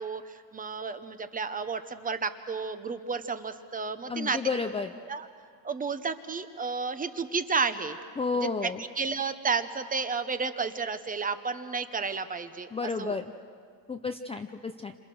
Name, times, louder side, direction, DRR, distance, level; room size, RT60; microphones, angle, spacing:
voice 1, 0.0-4.4 5.1-5.3 5.6-8.0 8.3-8.7 9.0-13.1, right 5 dB, 20° right, 10 dB, 1.0 m, -32 dB
voice 2, 4.1-4.9 8.2-8.8 12.7-13.3 13.9-14.9, left 4 dB, 15° left, 5 dB, 0.6 m, -31 dB
28.0 x 26.5 x 6.3 m, 2.1 s
cardioid pair, 135°, 45 cm